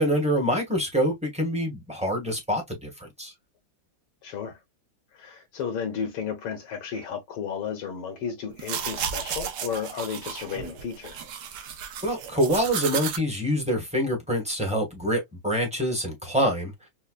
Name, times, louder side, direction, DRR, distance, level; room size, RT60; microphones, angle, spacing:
voice 1, 0.0-3.3 12.0-16.9, equal, 5° right, 0.7 m, -26 dB
voice 2, 4.2-4.6 5.1-11.2, left 7 dB, 75° left, 1.6 m, -33 dB
sound 1, 8.5-13.2, right 8 dB, 65° right, 1.1 m, -33 dB
5.5 x 2.1 x 2.3 m
omnidirectional pair, 2.4 m